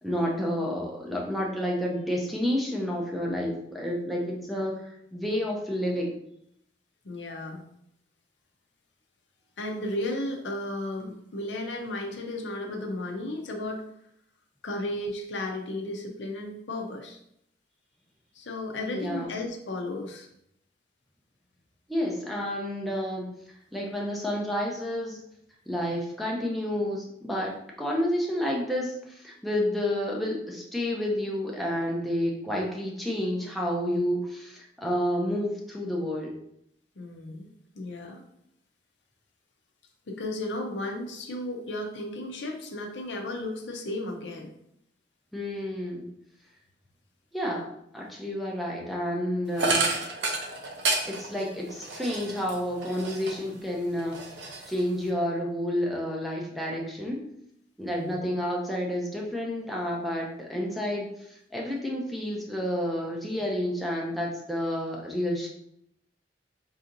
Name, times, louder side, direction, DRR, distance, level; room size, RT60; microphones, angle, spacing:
voice 1, 0.0-6.2 18.9-19.3 21.9-23.3 23.7-25.2 25.7-27.5 27.8-36.3 45.3-46.1 47.3-49.9 51.1-57.2 57.8-65.5, equal, ahead, -3 dB, 0.5 m, -30 dB
voice 2, 7.0-7.6 9.6-13.8 14.6-17.2 18.3-20.3 37.0-37.5 37.7-38.2 40.1-44.5 57.8-58.2, left 1 dB, 75° left, 2 dB, 0.7 m, -34 dB
sound 1, 49.6-53.6 53.9-55.1, right 3 dB, 70° right, 0.6 m, -30 dB
4.7 x 2.8 x 2.6 m, 0.76 s
head